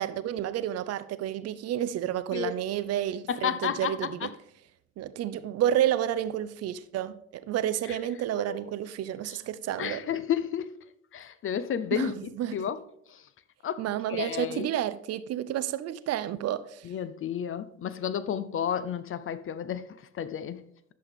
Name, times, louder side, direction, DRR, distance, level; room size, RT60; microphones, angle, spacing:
voice 1, 0.0-4.3 5.0-10.0 11.9-12.5 13.8-16.9, right 11 dB, 40° right, 0.5 m, -30 dB
voice 2, 3.3-3.9 8.5-8.6 9.3-9.4 9.8-10.7 11.1-12.8 13.6-13.8 14.1-14.7 16.8-19.9 20.2-20.6, left 9 dB, 35° left, 0.6 m, -31 dB
11.0 x 7.2 x 3.6 m
figure-of-eight pair, 45°, 38 cm